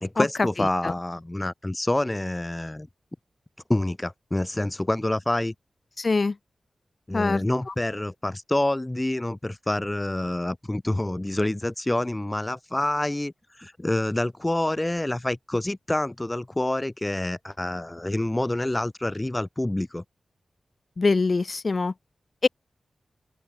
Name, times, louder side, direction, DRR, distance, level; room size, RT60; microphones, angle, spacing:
voice 1, 0.0-2.9 3.7-5.5 7.1-20.0, left 1 dB, 15° left, 0.7 m, -27 dB
voice 2, 6.0-6.3 7.1-7.4 21.0-21.9 22.4-22.5, left 3 dB, 45° left, 0.4 m, -23 dB
open air
wide cardioid pair, 90°, 0 cm